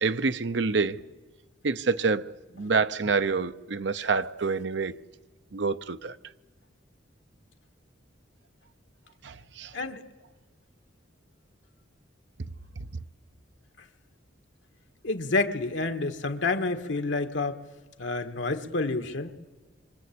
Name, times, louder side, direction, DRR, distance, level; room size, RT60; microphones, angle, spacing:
voice 1, 0.0-1.0 1.6-4.9 5.5-6.1 9.2-9.7, right 4 dB, 70° right, 0.8 m, -27 dB
voice 2, 15.0-17.6 18.0-19.3, left 3 dB, 85° left, 1.7 m, -29 dB
26.5 x 24.5 x 8.6 m
head